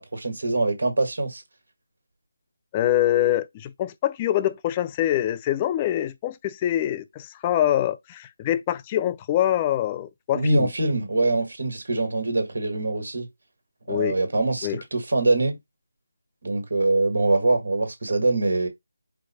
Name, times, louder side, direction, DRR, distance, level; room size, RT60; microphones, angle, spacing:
voice 1, 0.0-1.4 10.3-13.3 13.9-15.6 16.4-18.7, right 2 dB, 60° right, 1.6 m, -23 dB
voice 2, 2.7-10.7 13.9-14.2 14.6-14.8, left 12 dB, 20° left, 0.3 m, -24 dB
4.5 x 2.2 x 4.1 m
figure-of-eight pair, 160°, 0 cm